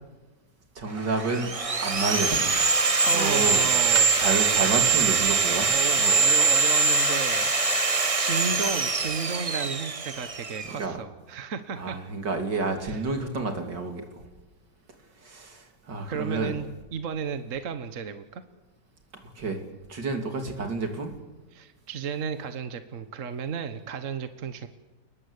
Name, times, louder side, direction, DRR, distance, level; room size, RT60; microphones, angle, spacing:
voice 1, 0.8-1.5 1.8-2.7 3.1-5.7 6.0-6.2 10.8-11.0 11.8-14.2 15.2-16.5 19.2-19.6 19.9-21.1, right 3 dB, 75° right, 5 dB, 3.7 m, -30 dB
Sawing, 1.0-10.8, right 4 dB, 25° right, 0.8 m, -23 dB
voice 2, 3.0-4.1 5.6-7.5 7.9-12.0 12.8-13.0 16.1-18.4 21.5-24.7, right 6 dB, 50° right, 10 dB, 1.5 m, -33 dB
29.5 x 20.0 x 8.3 m, 1.1 s
omnidirectional pair, 1.9 m